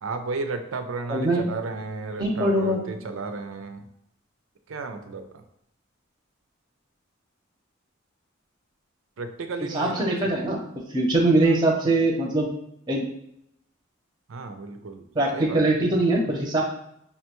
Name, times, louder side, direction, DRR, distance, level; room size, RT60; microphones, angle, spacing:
voice 1, 0.0-3.9 4.7-5.4 9.2-10.5 11.4-11.6 14.3-15.0 15.3-15.6, right 3 dB, 85° right, 8 dB, 0.5 m, -33 dB
voice 2, 1.1-1.4 2.2-2.8 9.6-10.6 10.9-12.5 12.9-13.0 15.2-16.6, right 2 dB, 20° right, 0 dB, 0.6 m, -22 dB
5.6 x 2.2 x 2.9 m, 0.77 s
head